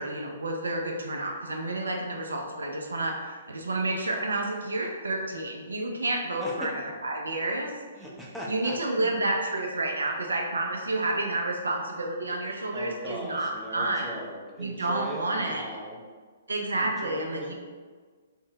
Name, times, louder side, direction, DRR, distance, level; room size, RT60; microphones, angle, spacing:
voice 1, 0.0-7.7 8.5-14.2 14.6-15.7 16.5-17.5, right 2 dB, 70° right, 1 dB, 0.3 m, -30 dB
voice 2, 6.4-6.7 8.0-9.1 12.7-16.0 16.8-17.5, equal, ahead, -5 dB, 0.4 m, -39 dB
2.6 x 2.0 x 2.7 m, 1.5 s
figure-of-eight pair, 120°, 0 cm